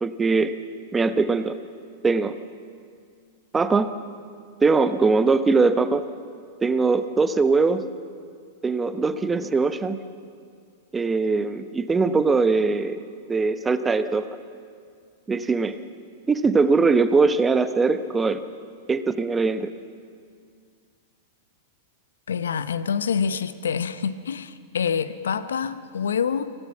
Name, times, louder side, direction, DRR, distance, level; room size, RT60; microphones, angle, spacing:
voice 1, 0.0-0.5 0.9-1.6 2.0-2.4 3.5-3.9 4.6-6.1 6.6-7.8 8.6-10.0 10.9-13.0 13.3-14.3 15.3-15.8 16.3-18.4 18.9-19.7, right 4 dB, 15° right, 11 dB, 1.0 m, -21 dB
voice 2, 22.3-26.5, left 6 dB, 75° left, 13 dB, 0.9 m, -26 dB
24.5 x 17.0 x 7.3 m, 2.1 s
hypercardioid pair, 100°, 0 cm